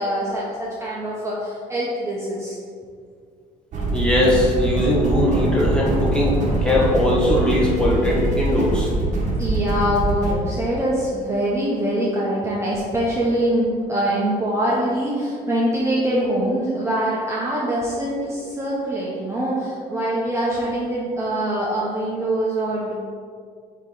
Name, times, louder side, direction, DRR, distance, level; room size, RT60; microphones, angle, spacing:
voice 1, 0.0-2.6 9.4-22.9, right 1 dB, 15° right, -6 dB, 1.0 m, -23 dB
sound 1, 3.7-10.3, right 2 dB, 45° right, 1.3 m, -23 dB
voice 2, 3.9-8.9, left 1 dB, 5° left, -5 dB, 1.5 m, -20 dB
7.9 x 3.2 x 3.9 m, 2.1 s
cardioid pair, 110°, 17 cm